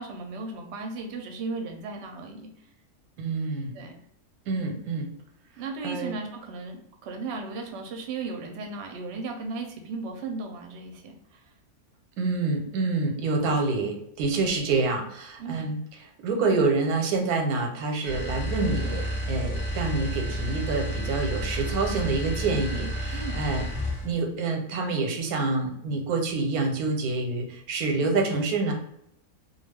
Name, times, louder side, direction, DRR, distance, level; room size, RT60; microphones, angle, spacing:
voice 1, 0.0-2.5 3.7-3.9 5.6-11.4 15.4-15.6 23.1-23.4, right 3 dB, 60° right, 2 dB, 0.7 m, -36 dB
voice 2, 3.2-3.7 4.5-5.1 5.8-6.1 12.2-15.8 16.2-23.7 24.0-28.7, right 3 dB, 90° right, 3 dB, 1.1 m, -27 dB
sound 1, 18.0-24.2, equal, 5° left, 1.0 m, -31 dB
2.3 x 2.3 x 3.3 m, 0.73 s
omnidirectional pair, 1.5 m